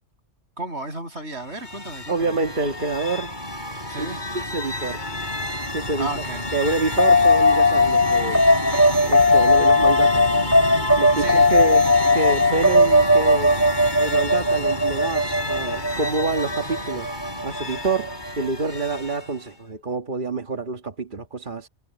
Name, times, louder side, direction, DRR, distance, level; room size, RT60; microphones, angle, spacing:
voice 1, 0.6-2.4 3.9-4.2 6.0-6.4 11.2-11.5, right 1 dB, 65° right, 8.4 m, -33 dB
sound 1, 1.3-19.5, left 1 dB, 40° left, 7.9 m, -30 dB
voice 2, 2.1-3.3 4.0-4.1 4.3-5.0 5.7-6.1 6.5-8.4 9.1-10.4 11.0-11.8 12.1-13.6 13.9-17.2 17.4-21.7, right 3 dB, 45° right, 1.7 m, -27 dB
sound 2, 7.0-17.8, left 2 dB, 15° right, 1.2 m, -18 dB
omnidirectional pair, 1.3 m